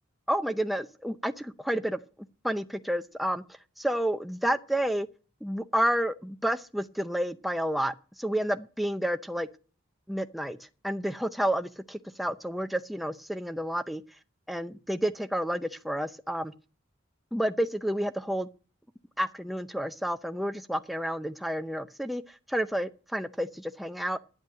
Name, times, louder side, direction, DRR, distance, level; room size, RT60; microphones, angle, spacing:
voice 1, 0.3-2.0 2.4-3.4 3.8-5.1 5.4-9.5 10.1-10.6 10.8-14.0 14.5-16.5 17.3-18.5 19.2-22.2 22.5-24.2, equal, ahead, 0.6 m, -30 dB
10.5 x 8.0 x 8.6 m
head